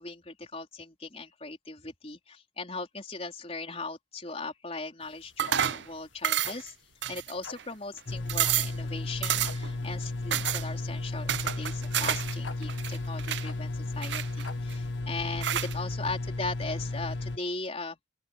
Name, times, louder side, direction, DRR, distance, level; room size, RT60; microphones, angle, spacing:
voice 1, 0.0-6.7 7.1-18.0, left 3 dB, 30° left, 4.4 m, -39 dB
sound 1, 5.0-15.0, left 4 dB, 80° left, 1.8 m, -48 dB
sound 2, 5.4-5.9 6.2-6.7 7.0-7.6 8.0-8.1 8.3-8.8 9.2-9.7 10.3-10.7 11.3-12.4 12.6-13.5 14.0-14.7 15.4-15.7, right 10 dB, 65° right, 0.6 m, -29 dB
sound 3, 8.1-17.4, left 2 dB, 65° left, 1.0 m, -34 dB
open air
head